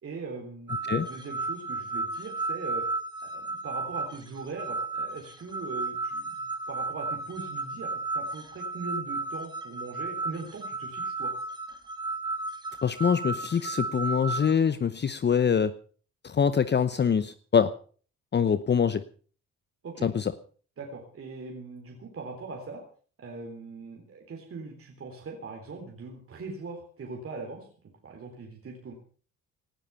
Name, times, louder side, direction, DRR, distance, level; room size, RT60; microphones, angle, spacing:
voice 1, 0.0-2.8 3.2-11.3 19.8-20.1 20.8-22.8 23.2-27.7 28.0-28.9, right 4 dB, 50° right, 2 dB, 3.7 m, -40 dB
sound 1, 0.7-14.5, right 3 dB, 15° right, 2.7 m, -34 dB
voice 2, 12.8-15.7 16.2-17.7 18.3-19.0 20.0-20.3, left 7 dB, 35° left, 13 dB, 0.9 m, -24 dB
18.5 x 12.5 x 5.7 m, 0.43 s
cardioid pair, 90°, 30 cm